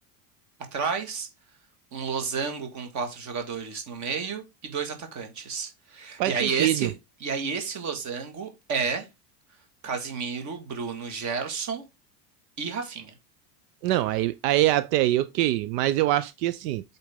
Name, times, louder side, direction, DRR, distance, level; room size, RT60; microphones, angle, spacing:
voice 1, 0.7-1.3 1.9-6.9 7.2-9.1 9.8-11.8 12.6-13.1, right 5 dB, 35° right, 1.8 m, -31 dB
voice 2, 6.2-6.9 13.8-16.8, right 15 dB, 75° right, 0.6 m, -24 dB
7.8 x 4.4 x 3.5 m
supercardioid pair, 150°, 49 cm